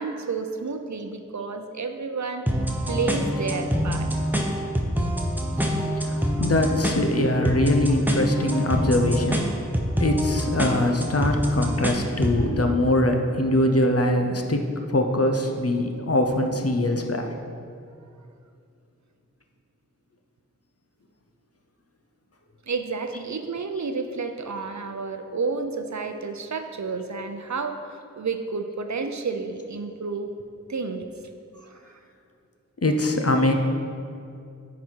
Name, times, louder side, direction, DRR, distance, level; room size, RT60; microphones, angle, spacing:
voice 1, 0.0-2.5 2.9-4.1 22.7-30.3 30.7-31.1 31.5-32.0, right 4 dB, 75° right, 7 dB, 0.5 m, -30 dB
sound 1, 2.5-12.4, equal, 5° right, 0.8 m, -26 dB
voice 2, 6.4-9.5 10.0-14.6 14.9-17.3 32.8-33.5, left 1 dB, 55° left, 4 dB, 0.7 m, -22 dB
9.5 x 4.1 x 4.6 m, 2.4 s
wide cardioid pair, 45°, 29 cm